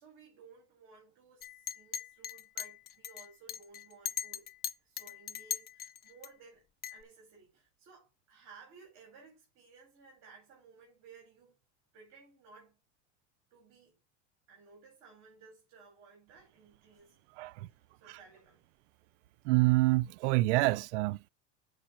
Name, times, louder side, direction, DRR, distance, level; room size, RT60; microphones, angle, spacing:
voice 1, 0.0-4.5 4.8-6.6 6.9-11.6 11.9-12.8 13.5-14.0 14.5-17.2 17.7-18.6, right 5 dB, 50° right, 4.1 m, -58 dB
Chink clink, 1.4-6.3 6.8-7.0, left 8 dB, 30° left, 0.5 m, -39 dB
voice 2, 17.4-17.7 19.4-21.3, right 20 dB, 85° right, 0.5 m, -27 dB
7.5 x 5.1 x 5.8 m
supercardioid pair, 150°, 34 cm